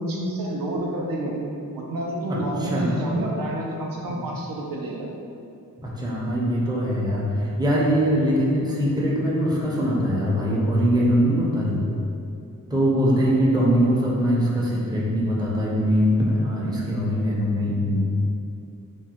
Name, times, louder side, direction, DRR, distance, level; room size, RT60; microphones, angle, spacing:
voice 1, 0.0-1.4 1.7-5.1, right 1 dB, 90° right, -2 dB, 0.5 m, -28 dB
voice 2, 2.3-2.9 5.8-11.9 12.7-18.1, equal, 10° right, -5 dB, 0.5 m, -22 dB
3.4 x 2.0 x 2.8 m, 2.6 s
wide cardioid pair, 105°, 33 cm